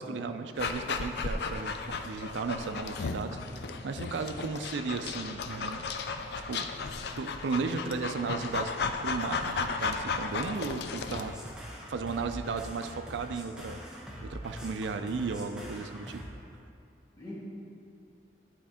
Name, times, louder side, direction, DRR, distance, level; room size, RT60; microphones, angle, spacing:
voice 1, 0.0-3.3 3.8-5.8 6.4-6.9 7.2-8.7 9.0-11.3 11.9-16.2, right 4 dB, 90° right, 8 dB, 0.4 m, -35 dB
Dog, 0.6-11.3, left 4 dB, 65° left, 0.4 m, -35 dB
voice 2, 3.2-3.8 17.1-17.4, left 1 dB, 20° left, -10 dB, 1.7 m, -45 dB
sound 1, 10.9-16.3, equal, 5° right, 0.8 m, -44 dB
11.5 x 4.2 x 3.6 m, 2.6 s
head